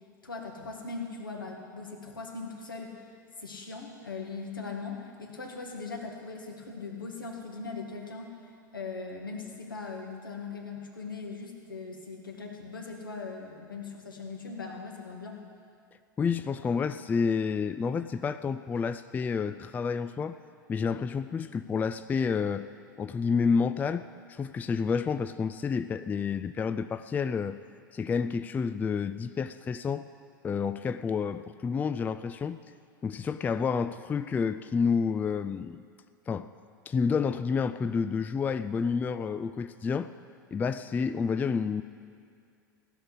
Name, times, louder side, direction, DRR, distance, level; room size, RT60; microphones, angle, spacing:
voice 1, 0.2-3.0 3.4-8.3 8.7-15.4, left 4 dB, 80° left, 1 dB, 1.9 m, -40 dB
voice 2, 16.2-20.4 20.7-22.7 23.0-27.6 27.9-30.0 30.4-32.6 33.0-35.8 36.3-36.5 36.9-40.1 40.5-41.8, left 5 dB, 15° left, 12 dB, 0.3 m, -29 dB
16.0 x 6.6 x 9.8 m, 2.3 s
figure-of-eight pair, 85°, 11 cm